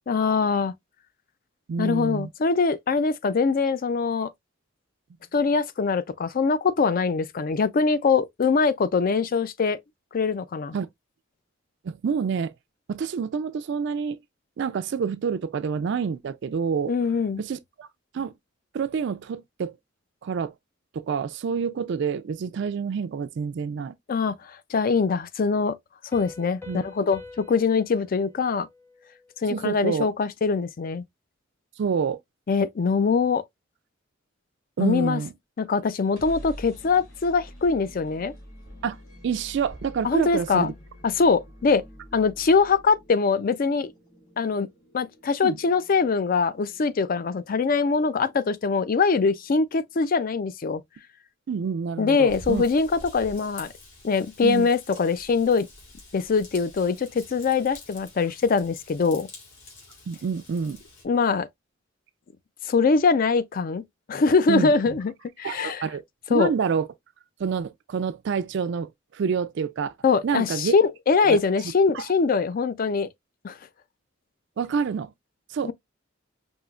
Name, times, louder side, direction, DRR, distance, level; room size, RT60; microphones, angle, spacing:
voice 1, 0.1-0.7 1.8-4.3 5.3-9.8 10.1-10.8 16.9-17.4 24.1-24.3 24.7-25.7 26.1-28.7 29.4-31.0 32.5-33.4 34.8-35.2 35.6-38.3 40.0-40.7 41.0-41.8 42.1-43.9 44.4-44.7 44.9-50.8 52.0-53.7 54.0-55.7 56.1-59.3 61.0-61.5 62.7-63.8 64.1-65.1 65.4-65.8 66.3-66.5 70.0-73.1 73.4-73.5 75.6-75.7, left 4 dB, 45° left, 0.4 m, -23 dB
voice 2, 1.7-2.3 10.7-10.9 11.8-12.5 12.9-14.2 14.6-16.9 17.4-17.9 18.1-18.3 18.7-19.7 20.2-20.5 20.9-23.9 26.7-26.8 29.5-30.1 31.8-32.2 34.8-35.3 38.8-39.0 39.2-40.7 45.4-45.6 51.5-52.6 54.4-54.7 60.1-60.8 64.5-64.7 65.4-66.0 66.3-66.9 67.4-69.9 70.2-70.7 71.3-71.4 71.9-72.1 74.6-75.1 75.5-75.7, right 6 dB, 60° right, 0.3 m, -27 dB
Piano, 26.1-29.5, left 3 dB, 10° left, 0.7 m, -46 dB
sound 1, 36.0-49.7, equal, 85° left, 2.5 m, -48 dB
Raindrop / Vehicle horn car horn honking / Trickle dribble, 52.3-61.0, left 2 dB, 65° left, 2.4 m, -47 dB
5.4 x 2.8 x 2.3 m
head